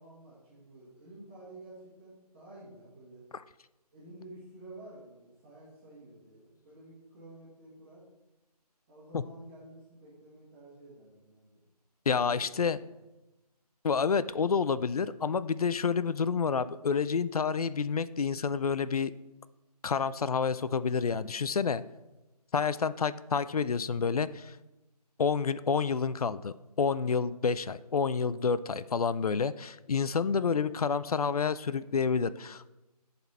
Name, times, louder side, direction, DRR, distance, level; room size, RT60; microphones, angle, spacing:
voice 1, 0.0-3.3 3.9-8.0 8.9-11.5 12.0-12.9, right 1 dB, 15° right, -8 dB, 1.6 m, -51 dB
voice 2, 12.1-12.8 13.8-19.1 19.8-21.8 22.5-24.5 25.2-32.7, left 5 dB, 65° left, 16 dB, 0.4 m, -29 dB
10.5 x 4.2 x 4.2 m, 1.0 s
figure-of-eight pair, 165°, 21 cm